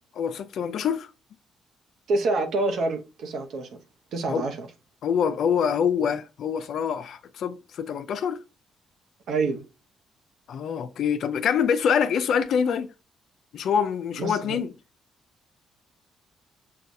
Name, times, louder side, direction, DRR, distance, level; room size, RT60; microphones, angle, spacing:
voice 1, 0.1-1.1 4.3-4.4 5.0-8.4 10.5-12.9 13.5-14.7, left 7 dB, 70° left, 0.4 m, -25 dB
voice 2, 2.1-3.8 4.1-4.7 9.3-9.6 14.2-14.6, right 3 dB, 70° right, 0.9 m, -27 dB
6.3 x 2.3 x 2.6 m
cardioid pair, 90°, 0 cm